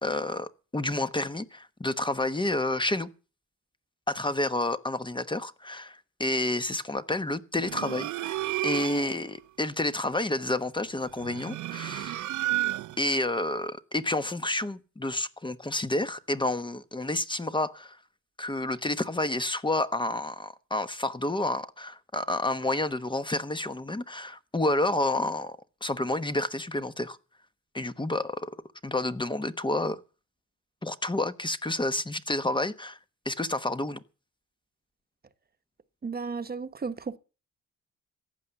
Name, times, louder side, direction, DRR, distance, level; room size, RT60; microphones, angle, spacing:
voice 1, 0.0-3.1 4.1-12.3 13.0-18.0 18.4-27.2 27.7-28.5 28.8-30.0 30.8-33.0 33.2-34.0, left 2 dB, 15° left, 1.1 m, -29 dB
sound 1, 7.6-9.2 11.1-13.1, right 15 dB, 75° right, 0.7 m, -32 dB
voice 2, 36.0-37.2, right 5 dB, 30° right, 1.2 m, -34 dB
15.0 x 9.5 x 7.0 m
cardioid pair, 90°, 30 cm